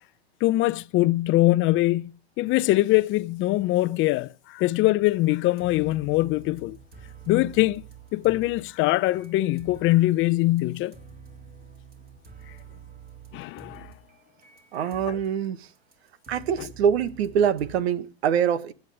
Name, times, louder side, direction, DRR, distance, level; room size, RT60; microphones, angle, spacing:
voice 1, 0.4-2.1 2.4-6.8 7.3-7.8 8.1-11.0 13.3-13.9 15.1-15.2 16.6-16.7, left 18 dB, 35° left, 0.7 m, -22 dB
sound 1, 5.6-10.1 10.4-15.4 15.8-17.8, right 6 dB, 25° right, 3.3 m, -48 dB
voice 2, 14.7-15.7 16.3-18.7, right 8 dB, 70° right, 1.4 m, -24 dB
23.0 x 9.3 x 3.5 m
hypercardioid pair, 105°, 33 cm